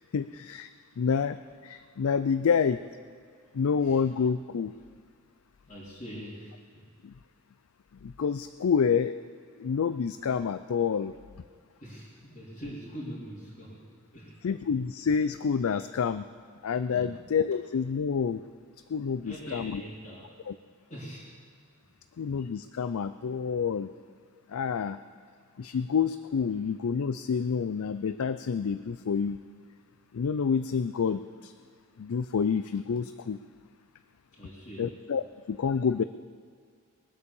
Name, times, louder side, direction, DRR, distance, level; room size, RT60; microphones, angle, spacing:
voice 1, 0.1-0.7 1.0-1.4 1.6-2.8 3.5-4.7 7.0-7.1 8.0-9.1 9.6-11.1 14.4-16.2 16.6-18.4 18.9-19.8 20.5-20.6 22.2-23.9 24.5-25.0 25.6-29.4 30.1-31.5 32.0-33.4 34.8-36.0, left 6 dB, 80° left, 12 dB, 0.4 m, -28 dB
voice 2, 3.8-4.1 5.6-6.9 11.8-14.5 16.9-17.2 19.1-20.3 20.9-21.4 34.3-34.9, equal, 35° left, -8 dB, 3.1 m, -43 dB
22.0 x 8.4 x 7.0 m, 2.1 s
head